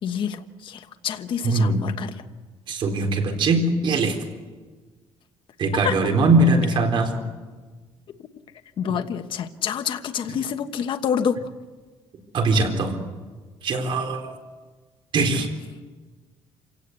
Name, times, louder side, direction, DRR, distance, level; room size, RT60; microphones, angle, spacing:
voice 1, 0.0-2.1 5.8-6.0 8.8-11.4, left 8 dB, 50° left, 7 dB, 1.2 m, -27 dB
voice 2, 1.4-1.8 2.7-4.1 5.6-7.1 12.3-13.0 13.6-14.2 15.1-15.5, right 2 dB, 50° right, 4 dB, 4.1 m, -21 dB
27.5 x 17.5 x 8.1 m, 1.4 s
cardioid pair, 140°, 11 cm